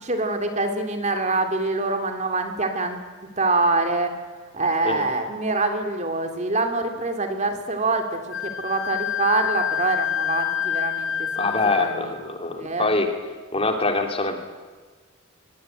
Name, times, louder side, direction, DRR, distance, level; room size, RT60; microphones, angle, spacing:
voice 1, 0.0-3.0 3.4-4.1 4.5-12.1 12.6-12.9, right 3 dB, 35° right, 5 dB, 3.0 m, -25 dB
Wind instrument woodwind instrument, 8.3-12.0, left 10 dB, 65° left, 3.5 m, -27 dB
voice 2, 11.4-13.1 13.5-14.4, left 2 dB, 30° left, 4 dB, 3.1 m, -24 dB
24.0 x 22.0 x 9.2 m, 1.4 s
head